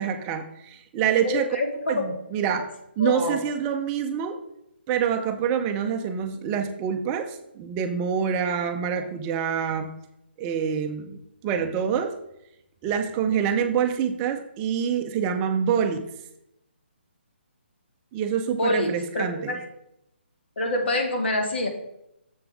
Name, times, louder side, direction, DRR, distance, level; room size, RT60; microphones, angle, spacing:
voice 1, 0.0-1.5 1.9-2.7 3.0-4.4 4.9-9.9 10.4-11.2 11.4-12.1 12.8-16.1 18.1-19.6, right 7 dB, 20° right, 6 dB, 0.5 m, -26 dB
voice 2, 1.2-2.0 3.0-3.4 9.0-9.1 18.6-19.6 20.6-21.7, left 2 dB, 65° left, 3 dB, 1.9 m, -26 dB
7.1 x 6.8 x 3.5 m, 0.81 s
figure-of-eight pair, 145°, 6 cm